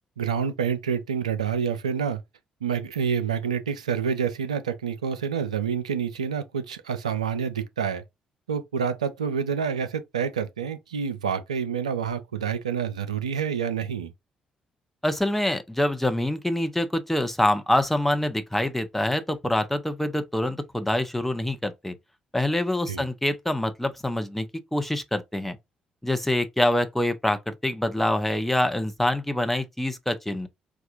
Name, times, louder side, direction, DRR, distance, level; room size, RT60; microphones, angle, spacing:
voice 1, 0.2-2.2 2.6-8.0 8.5-14.1 22.9-23.1, right 7 dB, 85° right, 0.3 m, -28 dB
voice 2, 15.0-21.9 22.3-25.6 26.0-30.5, left 1 dB, 5° left, 0.7 m, -25 dB
4.2 x 2.3 x 2.5 m
figure-of-eight pair, 45°, 3 cm